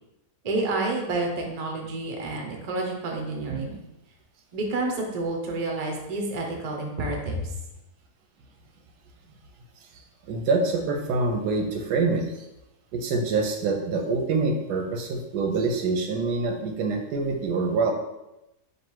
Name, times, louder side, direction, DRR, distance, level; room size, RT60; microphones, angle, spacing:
voice 1, 0.4-3.8 4.5-7.5, right 2 dB, 60° right, 1 dB, 0.4 m, -29 dB
voice 2, 10.3-12.5 12.9-17.9, right 3 dB, 90° right, 3 dB, 1.2 m, -25 dB
3.2 x 2.6 x 4.5 m, 0.92 s
omnidirectional pair, 1.7 m